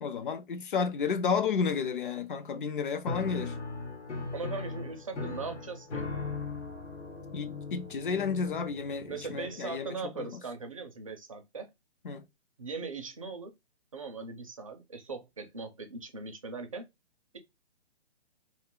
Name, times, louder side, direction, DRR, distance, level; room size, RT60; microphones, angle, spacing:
voice 1, 0.0-3.5 7.3-10.4 12.0-12.2, left 6 dB, 50° left, 0.5 m, -32 dB
Piano, 3.1-9.8, left 3 dB, 85° left, 1.1 m, -39 dB
voice 2, 4.3-6.0 9.1-11.7 12.6-13.5 13.9-16.9, right 4 dB, 30° right, 0.4 m, -40 dB
2.4 x 2.3 x 3.6 m
hypercardioid pair, 160°, 34 cm